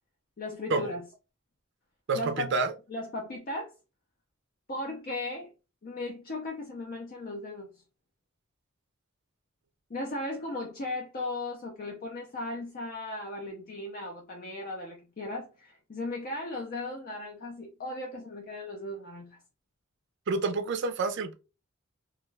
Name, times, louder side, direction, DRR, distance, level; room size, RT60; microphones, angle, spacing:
voice 1, 0.4-1.0 2.1-2.6 2.9-3.7 4.7-5.5 5.8-7.7 9.9-19.4, left 2 dB, 45° left, 0.5 m, -37 dB
voice 2, 2.1-2.7 20.3-21.3, right 3 dB, 60° right, 0.4 m, -28 dB
2.3 x 2.2 x 3.1 m
head